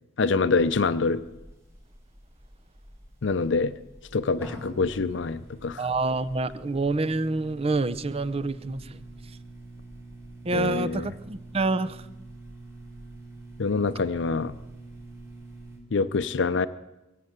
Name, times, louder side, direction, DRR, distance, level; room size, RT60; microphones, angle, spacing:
voice 1, 0.2-1.2 3.2-3.7 4.1-5.9 10.5-11.1 13.6-14.5 15.9-16.7, left 4 dB, 75° left, 14 dB, 0.6 m, -25 dB
sound 1, 0.6-15.8, right 2 dB, 15° right, 4.7 m, -46 dB
voice 2, 5.8-8.8 10.4-12.0, right 3 dB, 30° right, 16 dB, 0.6 m, -27 dB
22.5 x 7.7 x 8.0 m, 1.0 s
head